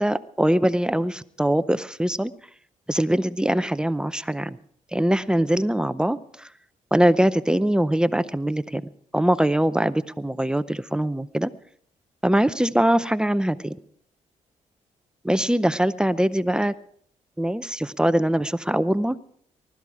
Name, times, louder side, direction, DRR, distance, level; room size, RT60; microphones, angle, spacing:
voice 1, 0.0-2.3 2.9-4.6 4.9-6.5 6.9-8.8 9.1-11.5 12.2-13.8 15.2-16.7 17.4-19.2, right 1 dB, 5° right, 14 dB, 0.6 m, -22 dB
20.0 x 13.0 x 4.8 m, 0.64 s
cardioid pair, 95°, 13 cm